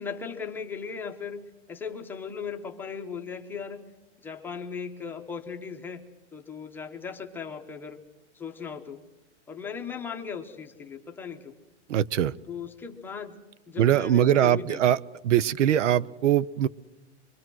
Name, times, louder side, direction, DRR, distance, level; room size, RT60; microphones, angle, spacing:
voice 1, 0.0-1.4 1.7-3.8 4.2-6.0 6.3-8.0 8.3-9.0 9.5-11.5 12.5-13.4 13.7-14.8, left 6 dB, 5° left, 3 dB, 0.7 m, -37 dB
voice 2, 11.9-12.4 13.8-16.7, right 11 dB, 85° right, 23 dB, 0.9 m, -22 dB
24.5 x 24.0 x 6.2 m, 1.1 s
supercardioid pair, 175°, 36 cm